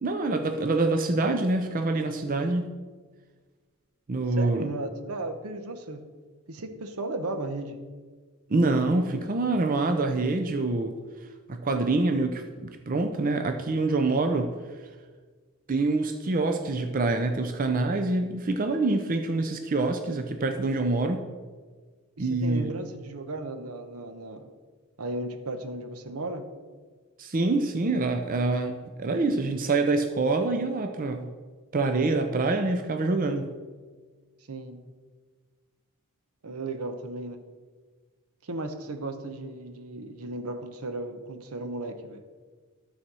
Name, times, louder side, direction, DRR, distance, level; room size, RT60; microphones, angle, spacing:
voice 1, 0.0-2.8 4.1-4.7 8.5-11.0 11.5-14.5 15.7-21.3 22.2-22.7 27.2-31.3 31.7-33.5, right 2 dB, 40° right, 5 dB, 0.5 m, -26 dB
voice 2, 4.4-6.1 6.5-7.8 22.2-24.5 25.0-26.4 34.5-34.8 36.4-37.5 38.4-42.2, right 2 dB, 75° right, 8 dB, 0.9 m, -35 dB
12.5 x 4.3 x 6.1 m, 1.5 s
head